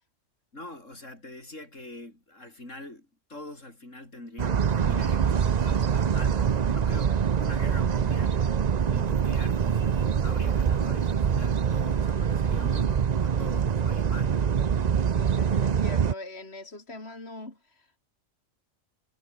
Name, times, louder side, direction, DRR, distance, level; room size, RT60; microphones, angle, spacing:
voice 1, 0.5-8.6 8.9-14.6, left 1 dB, 65° left, 7.4 m, -44 dB
sound 1, 4.4-16.1, right 7 dB, 45° right, 0.6 m, -25 dB
sound 2, 4.8-13.0, right 2 dB, 65° right, 4.8 m, -55 dB
voice 2, 15.1-18.0, left 2 dB, 50° left, 4.5 m, -42 dB
omnidirectional pair, 1.4 m